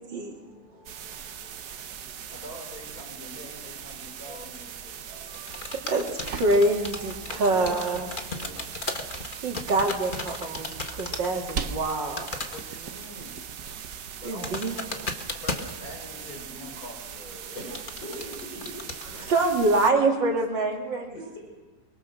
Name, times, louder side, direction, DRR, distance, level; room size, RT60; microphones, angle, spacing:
sound 1, 0.9-19.9, right 8 dB, 65° right, 1.5 m, -41 dB
voice 1, 2.3-5.0 12.5-13.4 14.2-14.9 15.4-17.9 19.1-19.3 20.5-20.6, left 1 dB, 50° left, 2 dB, 5.2 m, -44 dB
voice 2, 5.1-8.1 9.4-12.3 14.2-14.8 19.3-21.4, right 2 dB, 85° right, 1 dB, 3.3 m, -26 dB
sound 2, 5.3-11.3 11.5-11.9 12.2-12.7 13.0-13.3 13.6-16.2 16.6-16.7 17.6-19.0, left 3 dB, 30° left, 1.6 m, -35 dB
sound 3, 5.7-13.7, right 5 dB, 50° right, 1.3 m, -41 dB
voice 3, 18.0-19.3 21.2-21.4, left 1 dB, 90° left, -3 dB, 7.2 m, -41 dB
24.0 x 23.0 x 6.5 m, 1.2 s
omnidirectional pair, 1.9 m